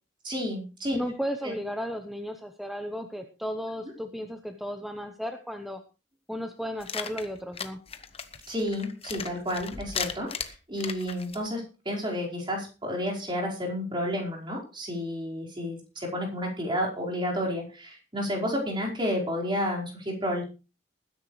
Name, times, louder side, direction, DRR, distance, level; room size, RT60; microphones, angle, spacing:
voice 1, 0.2-1.0 1.4-1.5 8.5-20.4, equal, 30° right, -2 dB, 4.9 m, -31 dB
voice 2, 0.9-5.8 6.3-7.8, equal, ahead, 5 dB, 1.0 m, -34 dB
sound 1, 6.8-11.5, left 6 dB, 35° left, 1.1 m, -37 dB
20.5 x 10.0 x 3.3 m, 0.32 s
head